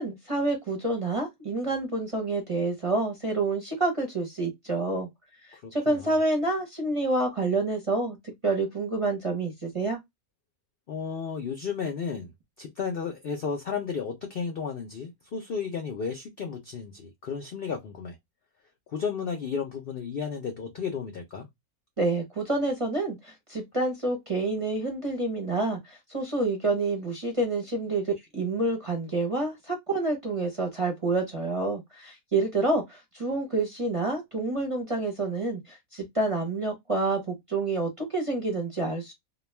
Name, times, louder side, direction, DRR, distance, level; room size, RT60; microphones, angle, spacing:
voice 1, 0.0-5.1 5.5-8.2 8.4-10.0 22.0-39.1, right 2 dB, 30° right, 0.6 m, -28 dB
voice 2, 5.5-6.1 10.9-12.3 12.6-18.2 18.9-21.5, left 6 dB, 65° left, 0.5 m, -33 dB
2.3 x 2.2 x 3.1 m
omnidirectional pair, 1.6 m